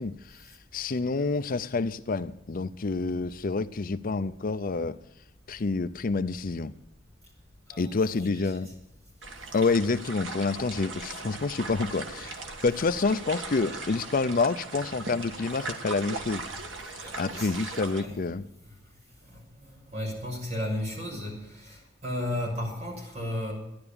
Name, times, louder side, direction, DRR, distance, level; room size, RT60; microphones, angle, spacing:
voice 1, 0.0-5.0 5.5-6.7 7.8-8.7 9.5-16.4 16.8-18.4, left 3 dB, 45° left, 12 dB, 0.5 m, -28 dB
sound 1, 9.2-18.0, right 3 dB, 80° right, 1.9 m, -39 dB
voice 2, 16.9-18.2 19.2-23.5, left 1 dB, 35° right, -1 dB, 6.7 m, -34 dB
13.0 x 11.0 x 8.6 m, 0.83 s
head